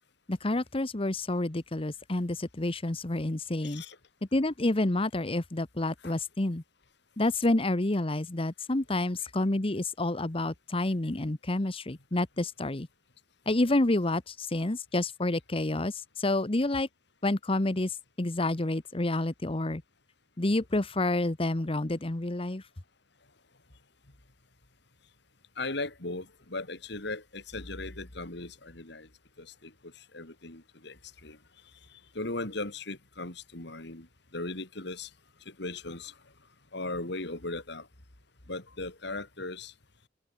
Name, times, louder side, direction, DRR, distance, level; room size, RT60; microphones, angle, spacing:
voice 1, 0.3-3.8 4.3-6.6 7.2-12.9 13.5-16.9 17.2-19.8 20.4-22.6, left 2 dB, 30° left, 1.1 m, -29 dB
voice 2, 3.6-4.0 6.0-6.1 25.6-29.1 29.4-31.4 32.2-34.1 34.3-35.1 35.5-36.1 36.7-37.9 38.5-39.7, left 2 dB, 65° left, 3.4 m, -38 dB
head